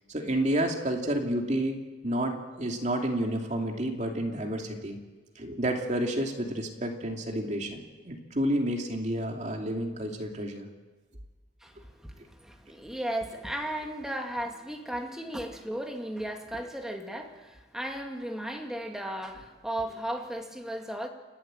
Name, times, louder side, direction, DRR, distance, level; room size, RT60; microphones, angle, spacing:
voice 1, 0.1-5.0 5.4-10.7, right 1 dB, 40° right, 2 dB, 2.7 m, -30 dB
voice 2, 11.6-21.1, right 1 dB, 5° right, 3 dB, 2.1 m, -35 dB
29.5 x 11.5 x 9.0 m, 1.3 s
head